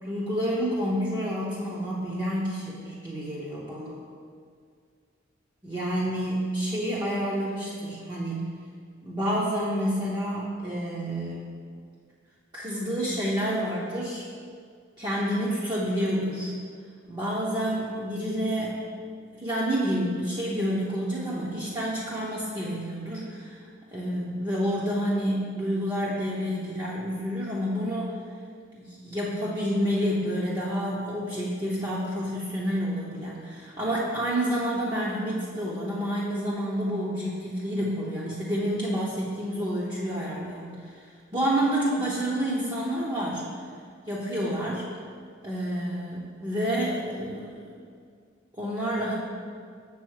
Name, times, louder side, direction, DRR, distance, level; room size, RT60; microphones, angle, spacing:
voice 1, 0.0-4.0 5.6-8.5 9.0-11.5 12.5-14.2 15.0-16.5 17.1-18.8 19.3-23.6 23.9-28.1 28.7-41.0 41.3-43.4 44.1-44.8 45.4-47.7 48.6-49.2, equal, 20° right, -7 dB, 0.8 m, -29 dB
7.0 x 3.8 x 6.4 m, 2.1 s
head